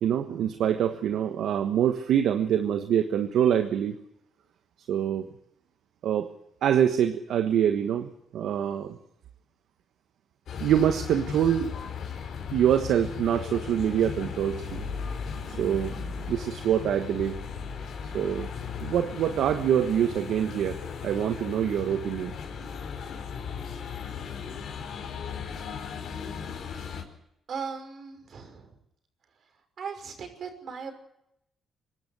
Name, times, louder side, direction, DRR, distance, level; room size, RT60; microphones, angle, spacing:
voice 1, 0.0-4.0 4.9-5.3 6.0-6.3 6.6-9.0 10.6-11.7 12.5-14.9 15.5-17.4 18.0-18.5 18.8-22.3, right 9 dB, 75° right, 7 dB, 1.3 m, -25 dB
sound 1, 10.5-27.0, left 6 dB, 65° left, 4.9 m, -37 dB
voice 2, 27.5-28.7 29.8-30.9, right 6 dB, 55° right, 6 dB, 5.7 m, -38 dB
25.0 x 12.5 x 9.5 m, 0.79 s
cardioid pair, 90°, 0 cm